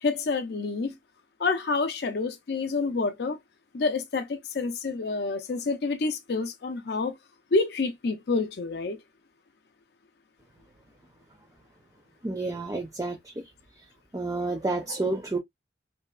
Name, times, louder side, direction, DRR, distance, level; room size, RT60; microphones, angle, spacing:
voice 1, 0.0-0.9 1.4-3.4 3.7-7.1 7.5-9.0, left 3 dB, 60° left, 0.5 m, -28 dB
voice 2, 12.2-13.2 14.1-15.4, right 2 dB, 20° right, 0.4 m, -29 dB
2.8 x 2.3 x 2.3 m
head